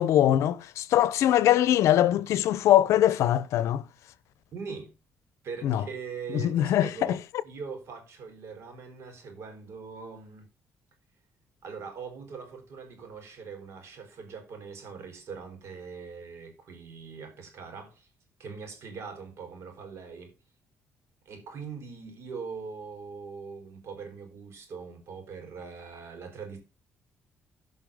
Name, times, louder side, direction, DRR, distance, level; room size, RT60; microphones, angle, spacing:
voice 1, 0.0-3.8 5.6-5.8 6.3-7.2, left 12 dB, 80° left, 0.7 m, -22 dB
voice 2, 4.5-4.9 5.4-10.5 11.6-18.1 18.4-20.3 21.2-26.6, right 5 dB, 65° right, 4.3 m, -41 dB
16.0 x 5.6 x 3.6 m
cardioid pair, 90°, 5 cm